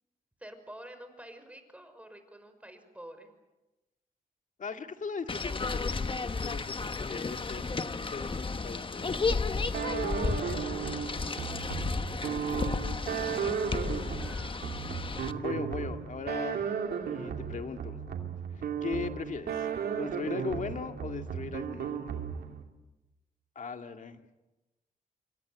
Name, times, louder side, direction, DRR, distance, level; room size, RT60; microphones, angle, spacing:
voice 1, 0.4-3.3 10.1-10.8 11.1-11.6 14.2-14.6, right 1 dB, 10° right, 8 dB, 5.5 m, -49 dB
voice 2, 4.6-7.8 8.1-9.2 15.3-16.7 17.0-18.0 18.8-19.7 20.0-22.0 23.6-24.2, left 5 dB, 55° left, 6 dB, 2.1 m, -38 dB
sound 1, 5.3-15.3, left 4 dB, 35° left, 1.3 m, -33 dB
sound 2, 9.7-22.6, right 7 dB, 90° right, 2.8 m, -35 dB
27.0 x 24.0 x 8.1 m, 1.0 s
cardioid pair, 80°, 16 cm